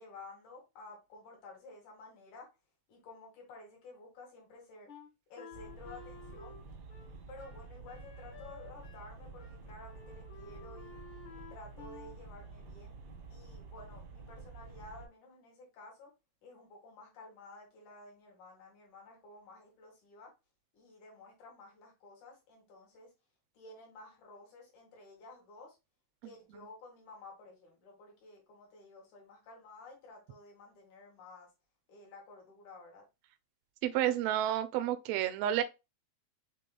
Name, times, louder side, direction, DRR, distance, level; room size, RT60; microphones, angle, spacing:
voice 1, 0.0-2.5 2.9-4.9 5.3-6.6 7.3-11.0 11.5-13.0 13.3-16.1 16.4-20.3 20.7-23.1 23.5-25.8 26.2-31.5 31.9-33.0, left 2 dB, 85° left, 3.3 m, -53 dB
Wind instrument woodwind instrument, 4.9-9.1 9.4-9.6 9.8-12.2, left 5 dB, 60° left, 1.2 m, -53 dB
sound 1, 5.5-15.1, right 3 dB, 60° right, 1.1 m, -50 dB
voice 2, 33.8-35.6, right 12 dB, 80° right, 1.5 m, -30 dB
6.7 x 3.5 x 2.2 m
omnidirectional pair, 3.4 m